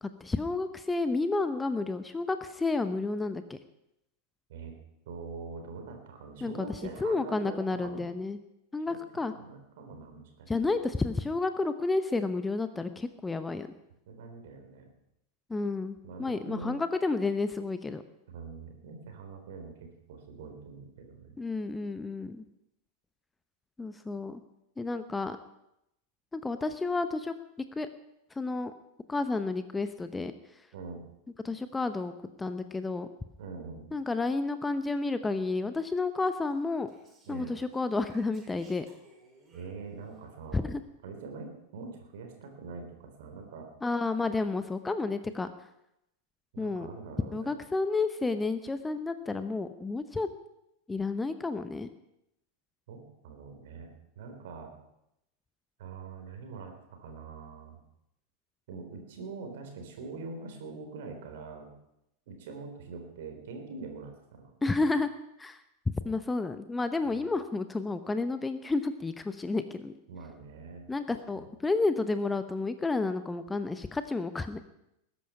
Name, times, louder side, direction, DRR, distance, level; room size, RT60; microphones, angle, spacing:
voice 1, 0.0-3.6 6.4-8.4 8.7-9.3 10.5-13.7 15.5-18.0 21.4-22.5 23.8-24.4 24.8-25.4 26.3-27.3 27.8-27.9 28.3-28.7 29.1-30.6 31.4-32.1 32.4-33.1 33.9-36.9 37.3-38.9 40.5-40.8 43.8-45.7 46.6-46.9 47.3-50.3 50.9-51.9 64.6-65.1 65.4-65.6 66.0-69.9 70.9-74.6, left 3 dB, 10° left, 11 dB, 0.8 m, -31 dB
voice 2, 5.1-8.0 8.9-9.0 9.3-10.5 14.1-14.9 16.0-16.8 18.3-21.4 30.7-31.0 33.4-33.9 37.3-37.5 39.5-40.7 41.0-43.7 46.5-47.5 52.9-53.9 54.2-54.7 55.8-56.7 57.0-57.8 58.7-61.7 62.3-64.5 67.0-67.2 70.1-70.8 71.4-71.5, right 4 dB, 55° right, 4 dB, 3.9 m, -43 dB
Speech, 36.3-40.2, right 2 dB, 20° right, 5.2 m, -60 dB
20.0 x 11.0 x 5.8 m, 0.83 s
figure-of-eight pair, 90°, 0 cm